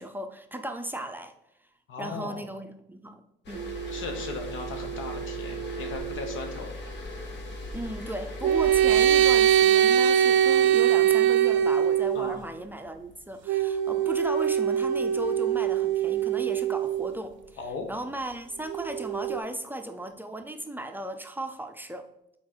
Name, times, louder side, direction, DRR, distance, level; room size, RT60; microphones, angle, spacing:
voice 1, 0.0-1.3 2.0-3.7 7.7-17.6 17.9-22.1, right 1 dB, 10° right, 6 dB, 0.6 m, -36 dB
voice 2, 1.9-2.4 3.9-6.7 12.1-12.4 17.6-17.9, left 4 dB, 80° left, 4 dB, 1.2 m, -37 dB
sound 1, 3.4-9.5, left 1 dB, 65° left, 1.5 m, -39 dB
sound 2, 3.6-6.4 8.4-12.4 13.5-17.2 18.7-19.4, right 10 dB, 75° right, 0.5 m, -23 dB
6.1 x 4.1 x 4.5 m, 0.83 s
cardioid pair, 90°, 20 cm